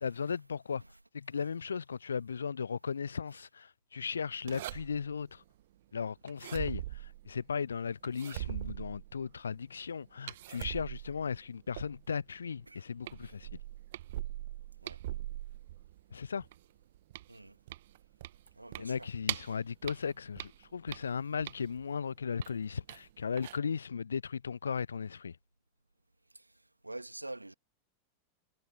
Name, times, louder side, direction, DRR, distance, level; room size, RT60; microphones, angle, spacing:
voice 1, 0.0-0.8 1.1-5.4 5.9-13.6 16.1-16.5 18.8-25.4, left 6 dB, 70° left, 0.4 m, -36 dB
sound 1, 4.5-5.2 6.3-7.5 8.0-9.4 10.3-12.2 12.7-12.8 13.1-16.0 16.4-19.6 19.8-21.8 22.4-23.1 23.4-23.6, right 15 dB, 55° right, 1.4 m, -41 dB
voice 2, 18.6-19.1 19.5-19.6 26.3-27.5, right 2 dB, 85° right, 2.1 m, -47 dB
figure-of-eight pair, 90°, 0 cm